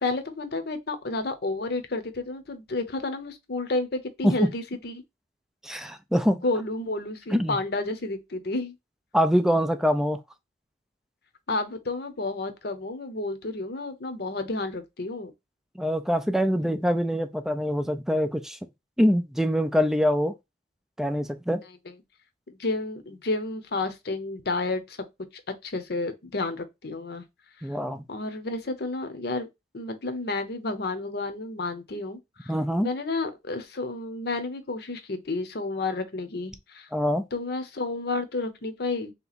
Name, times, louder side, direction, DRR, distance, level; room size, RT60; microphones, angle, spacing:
voice 1, 0.0-5.0 6.4-8.7 11.5-15.3 16.6-16.8 21.9-22.0 22.5-25.0 25.6-27.2 28.1-29.5 29.7-32.6 32.8-36.9 37.3-39.1, left 2 dB, 60° left, 0.8 m, -31 dB
voice 2, 5.6-6.4 7.3-7.6 9.1-10.2 15.8-18.6 19.0-20.3 21.0-21.6 27.6-28.0 32.5-32.9 36.9-37.3, equal, 5° right, 0.4 m, -24 dB
3.4 x 2.9 x 4.1 m
head